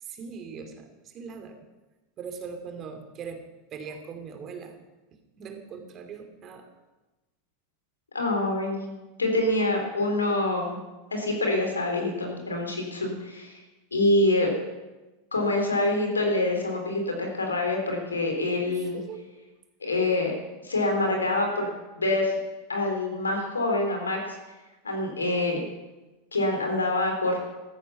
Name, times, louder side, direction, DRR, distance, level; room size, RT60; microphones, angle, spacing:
voice 1, 0.0-1.7 2.2-3.4 3.7-4.8 5.4-6.7 18.7-19.2, right 6 dB, 35° right, 6 dB, 2.8 m, -40 dB
voice 2, 8.1-8.9 9.2-10.8 11.1-13.6 13.9-14.5 15.3-19.0 19.8-20.3 20.6-21.7 22.0-22.4 22.7-24.4 24.8-25.6 26.3-27.4, left 2 dB, 80° left, 2 dB, 3.7 m, -26 dB
15.5 x 13.5 x 5.7 m, 1.1 s
figure-of-eight pair, 85°, 0 cm